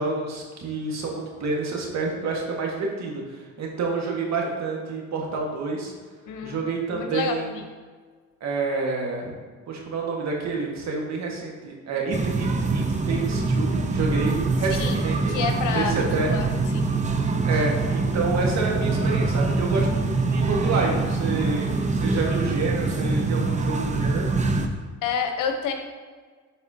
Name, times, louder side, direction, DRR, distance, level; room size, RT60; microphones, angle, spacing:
voice 1, 0.0-5.9 6.4-7.5 8.4-9.3 9.7-15.3 15.7-16.3 17.4-24.3, right 3 dB, 60° right, -1 dB, 1.6 m, -28 dB
voice 2, 6.3-6.6 6.9-7.7 14.7-16.9 25.0-25.7, left 6 dB, 85° left, 5 dB, 1.0 m, -29 dB
sound 1, 12.1-24.7, right 3 dB, 25° right, 0.7 m, -24 dB
11.5 x 4.2 x 2.8 m, 1.5 s
cardioid pair, 90°, 30 cm